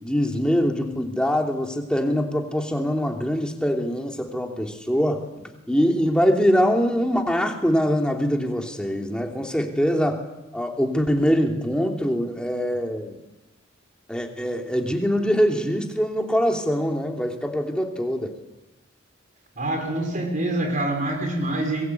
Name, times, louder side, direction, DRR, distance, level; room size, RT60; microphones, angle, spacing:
voice 1, 0.0-10.2 10.5-13.1 14.1-18.4, equal, 5° left, 2 dB, 3.0 m, -23 dB
voice 2, 19.6-21.9, right 1 dB, 40° right, 4 dB, 5.1 m, -25 dB
24.5 x 22.5 x 8.5 m, 1.0 s
head